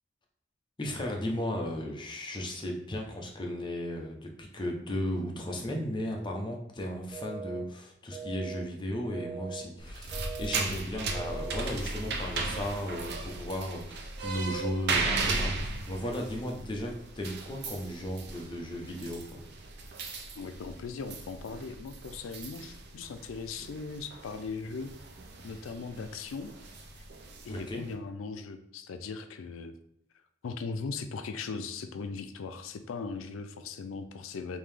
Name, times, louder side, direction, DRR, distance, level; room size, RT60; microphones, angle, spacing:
voice 1, 0.8-19.4 27.5-27.8, left 1 dB, 25° left, 1 dB, 0.6 m, -35 dB
sound 1, 7.1-7.6 8.1-8.6 9.1-9.6 10.1-10.6 11.1-11.6, right 6 dB, 15° right, 0.9 m, -40 dB
sound 2, 9.8-27.9, right 3 dB, 55° right, 0.5 m, -37 dB
voice 2, 20.4-25.0 25.4-26.5 27.4-29.7 30.4-34.6, left 4 dB, 90° left, 9 dB, 0.4 m, -39 dB
3.6 x 2.7 x 3.3 m, 0.76 s
head